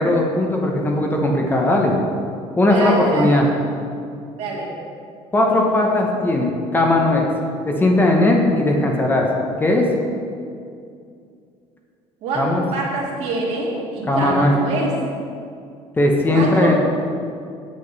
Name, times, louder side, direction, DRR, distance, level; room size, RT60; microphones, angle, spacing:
voice 1, 0.0-1.9 2.6-3.5 5.3-7.3 7.7-9.3 9.6-9.9 12.4-12.6 14.1-14.5 16.0-16.7, left 1 dB, 15° left, 0 dB, 0.9 m, -18 dB
voice 2, 2.6-3.5 4.4-4.7 12.2-14.9 16.3-16.7, right 3 dB, 65° right, -3 dB, 2.0 m, -25 dB
8.3 x 7.5 x 4.0 m, 2.4 s
cardioid pair, 145°, 12 cm